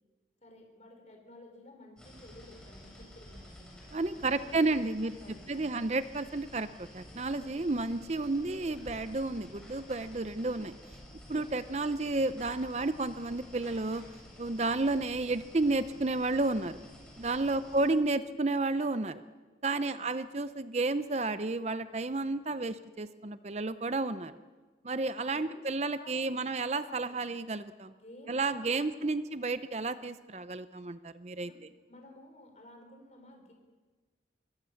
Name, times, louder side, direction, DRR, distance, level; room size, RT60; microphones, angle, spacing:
voice 1, 0.4-3.7 4.1-5.7 17.3-17.6 19.7-20.1 25.3-26.5 26.8-27.3 28.0-29.1 31.4-31.6 31.9-33.5, left 1 dB, 40° left, 3 dB, 5.2 m, -54 dB
sound 1, 2.0-17.9, left 1 dB, 5° left, 8.0 m, -51 dB
voice 2, 3.9-5.1 5.5-10.7 11.3-14.0 14.4-16.8 17.2-19.2 19.6-24.4 24.8-27.9 28.3-31.5, right 2 dB, 35° right, 12 dB, 0.6 m, -31 dB
25.5 x 22.0 x 7.1 m, 1.4 s
head